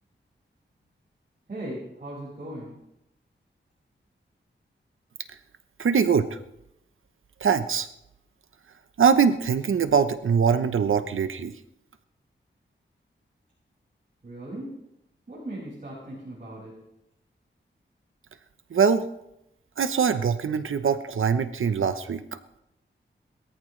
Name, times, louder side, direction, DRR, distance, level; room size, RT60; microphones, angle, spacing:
voice 1, 1.5-2.7 14.2-14.8 15.3-16.8, right 1 dB, 45° right, -6 dB, 6.0 m, -38 dB
voice 2, 5.8-6.4 7.4-7.9 9.0-11.5 18.7-19.1 19.8-22.2, right 6 dB, 85° right, 10 dB, 0.9 m, -22 dB
21.5 x 14.0 x 3.3 m, 0.83 s
wide cardioid pair, 90°, 20 cm